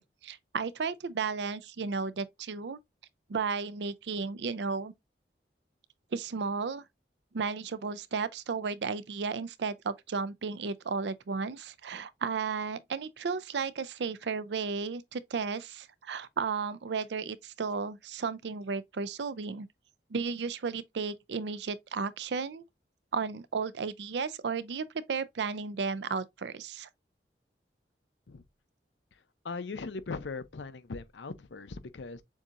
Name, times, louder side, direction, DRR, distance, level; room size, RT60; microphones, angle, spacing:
voice 1, 0.0-2.8 3.3-4.9 6.1-6.9 7.3-19.7 20.1-22.6 23.1-26.9, right 5 dB, 75° right, 0.5 m, -34 dB
voice 2, 29.4-32.2, left 4 dB, 85° left, 0.6 m, -39 dB
7.1 x 2.8 x 2.5 m
head